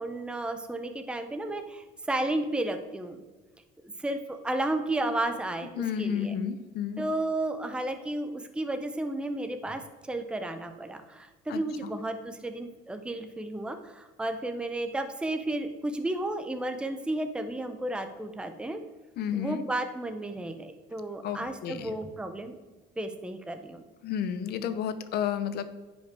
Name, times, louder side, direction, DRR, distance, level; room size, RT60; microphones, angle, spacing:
voice 1, 0.0-3.2 4.0-6.3 7.0-18.8 19.3-22.5 23.0-23.8, right 1 dB, 5° right, 7 dB, 0.6 m, -33 dB
voice 2, 5.8-7.1 11.5-11.9 19.2-19.6 21.2-21.9 24.0-25.6, left 8 dB, 70° left, 12 dB, 0.7 m, -31 dB
10.0 x 5.2 x 3.4 m, 1.3 s
cardioid pair, 110°, 17 cm